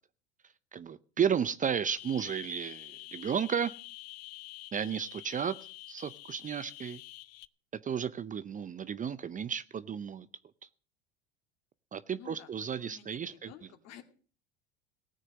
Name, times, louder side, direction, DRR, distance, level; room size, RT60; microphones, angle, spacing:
voice 1, 0.7-3.7 4.7-5.6 5.9-7.0 7.7-10.3 10.6-10.7 11.9-13.5, right 7 dB, 25° right, 15 dB, 0.6 m, -33 dB
sound 1, 2.0-7.4, left 18 dB, 70° left, 0.6 m, -48 dB
voice 2, 12.2-14.0, left 10 dB, 55° left, 6 dB, 2.3 m, -53 dB
18.0 x 6.5 x 7.5 m, 0.41 s
hypercardioid pair, 80°, 32 cm